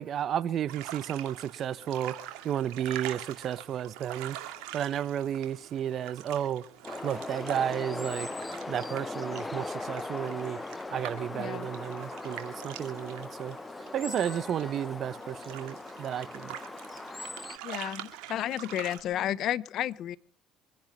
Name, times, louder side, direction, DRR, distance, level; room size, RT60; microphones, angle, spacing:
voice 1, 0.0-2.1 2.4-4.4 4.7-6.6 7.0-8.3 8.7-10.6 10.9-13.6 13.9-16.6, right 10 dB, 55° right, 1.0 m, -32 dB
sound 1, 0.7-19.0, right 13 dB, 75° right, 2.5 m, -45 dB
sound 2, 6.8-17.6, left 2 dB, 20° left, 0.9 m, -39 dB
voice 2, 11.3-11.7 17.6-20.2, left 12 dB, 60° left, 0.8 m, -32 dB
25.0 x 10.5 x 5.1 m
hypercardioid pair, 70°, 0 cm